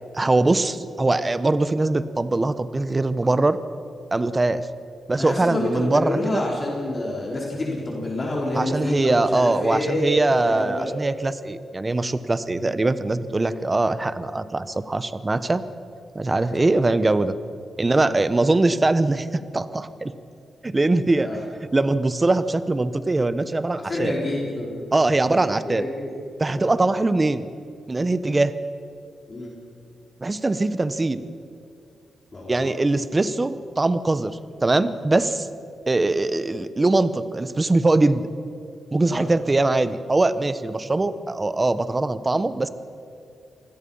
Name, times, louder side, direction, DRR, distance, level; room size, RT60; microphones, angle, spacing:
voice 1, 0.1-3.6 4.1-4.7 5.1-6.5 8.5-15.6 16.1-17.3 17.8-19.3 19.5-20.1 20.6-21.4 21.7-24.1 24.9-25.9 26.4-27.4 27.9-28.5 30.2-31.2 32.5-35.5 35.9-38.3 38.9-42.7, right 2 dB, 25° right, 13 dB, 1.0 m, -22 dB
voice 2, 5.2-10.9 16.3-16.7 18.0-18.1 21.1-21.4 23.8-24.8 25.0-25.4 25.7-26.1 26.5-26.6 29.3-29.5 32.3-32.7 39.0-39.3, left 1 dB, 35° left, -3 dB, 4.3 m, -28 dB
28.0 x 20.0 x 5.6 m, 2.4 s
cardioid pair, 95°, 0 cm